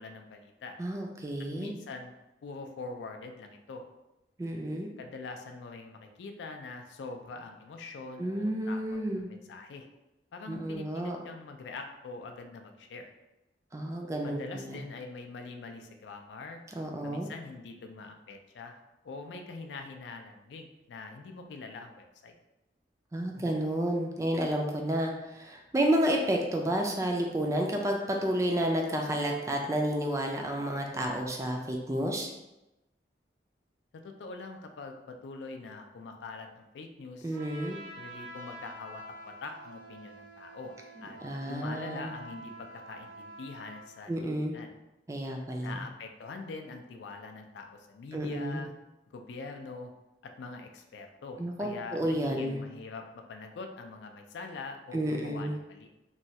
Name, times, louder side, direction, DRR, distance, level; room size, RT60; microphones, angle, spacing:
voice 1, 0.0-0.8 1.5-2.1 2.4-3.8 5.0-9.9 10.3-13.1 14.2-16.6 17.0-18.8 19.0-22.3 33.9-37.4 37.9-40.7 41.0-41.2 41.5-44.7 45.6-48.7 49.1-49.9 50.2-55.9, left 3 dB, 80° left, 4 dB, 0.4 m, -44 dB
voice 2, 0.8-1.7 4.4-4.9 8.2-9.3 10.5-11.2 13.7-14.8 16.8-17.3 23.1-32.3 37.2-37.8 41.0-42.1 44.1-44.6 45.1-45.7 48.1-48.6 51.4-52.6 54.9-55.6, right 1 dB, 15° right, 1 dB, 0.3 m, -31 dB
Trumpet, 37.3-43.9, right 1 dB, 90° right, 0.9 m, -47 dB
3.0 x 2.3 x 2.7 m, 0.96 s
head